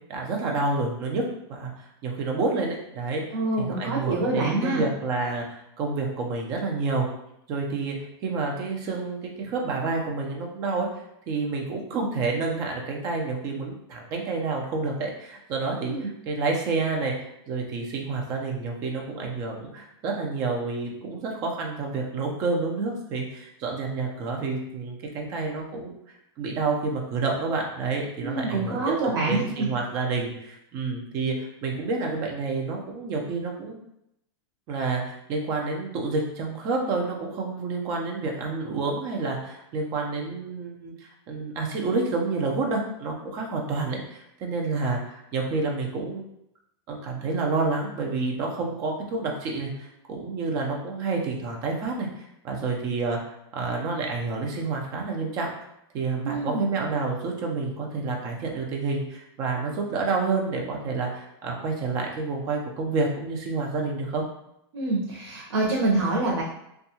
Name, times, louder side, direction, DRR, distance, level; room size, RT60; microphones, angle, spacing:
voice 1, 0.1-3.2 3.6-7.1 7.5-8.0 8.2-10.9 11.3-25.9 26.4-33.8 34.7-46.2 46.9-53.2 53.5-55.5 55.9-64.2, right 3 dB, 25° right, 0 dB, 0.5 m, -29 dB
voice 2, 3.3-4.8 15.8-16.0 28.2-29.7 56.2-56.7 64.7-66.4, right 2 dB, 90° right, -3 dB, 0.7 m, -26 dB
2.7 x 2.3 x 2.7 m, 0.78 s
supercardioid pair, 165°, 14 cm